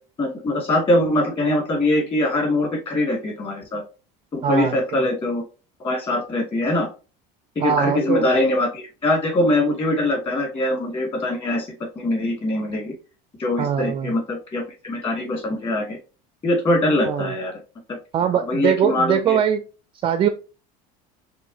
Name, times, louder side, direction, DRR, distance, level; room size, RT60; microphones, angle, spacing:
voice 1, 0.2-3.8 4.3-5.4 5.8-6.9 7.6-11.7 12.0-12.9 13.4-16.0 16.4-17.5 17.9-18.0 18.3-19.4, left 1 dB, 30° left, 2.2 m, -22 dB
voice 2, 4.4-5.0 7.6-8.2 13.6-14.1 17.1-17.3 18.1-19.6 20.0-20.3, right 8 dB, 30° right, 0.4 m, -21 dB
6.1 x 2.6 x 2.8 m
cardioid pair, 150°, 18 cm